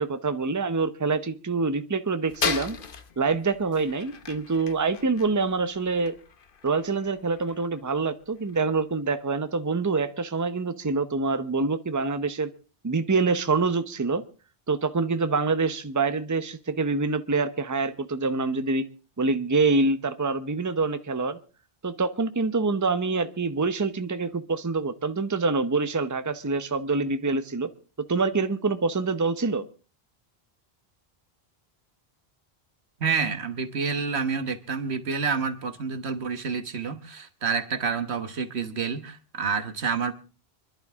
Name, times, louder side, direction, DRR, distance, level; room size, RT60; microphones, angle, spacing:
voice 1, 0.0-2.8 3.2-6.1 6.6-12.5 12.8-14.2 14.7-18.9 19.2-21.4 21.8-27.7 28.1-29.7, right 4 dB, 20° right, 11 dB, 0.8 m, -26 dB
sound 1, 2.3-9.0, left 6 dB, 55° left, 1.1 m, -37 dB
voice 2, 33.0-40.1, right 5 dB, 85° right, 10 dB, 1.6 m, -28 dB
25.5 x 11.5 x 3.6 m, 0.35 s
omnidirectional pair, 1.1 m